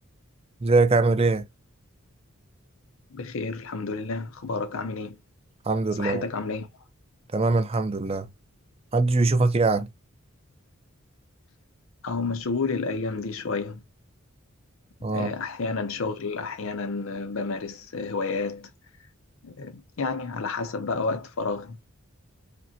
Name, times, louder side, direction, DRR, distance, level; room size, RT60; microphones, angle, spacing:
voice 1, 0.6-1.5 5.7-6.2 7.3-8.3 8.9-9.9 15.0-15.3, right 3 dB, 30° right, 0.5 m, -22 dB
voice 2, 3.1-5.2 6.0-6.7 12.0-13.8 15.0-18.7 19.4-21.8, left 4 dB, 70° left, 0.6 m, -30 dB
5.1 x 2.2 x 2.8 m
head